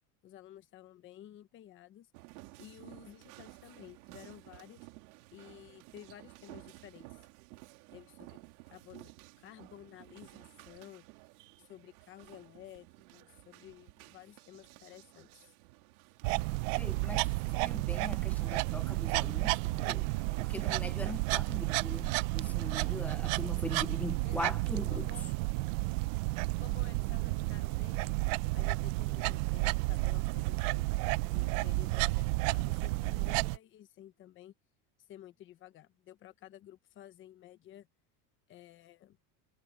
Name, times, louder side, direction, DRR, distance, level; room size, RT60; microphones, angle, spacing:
voice 1, 0.2-2.1 2.6-4.9 5.3-7.2 7.9-8.4 8.7-9.1 9.4-11.1 11.6-15.5 24.2-24.6 24.9-25.3 26.6-28.2 28.5-30.9 31.3-34.5 35.0-37.9 38.5-39.2, left 12 dB, 25° left, 1.0 m, -53 dB
sound 1, 2.1-20.8, right 22 dB, 85° right, 2.9 m, -55 dB
sound 2, 16.2-33.6, right 23 dB, 60° right, 0.6 m, -32 dB
voice 2, 16.8-20.1 20.4-25.1, left 2 dB, 5° left, 0.5 m, -41 dB
cardioid pair, 180°, 43 cm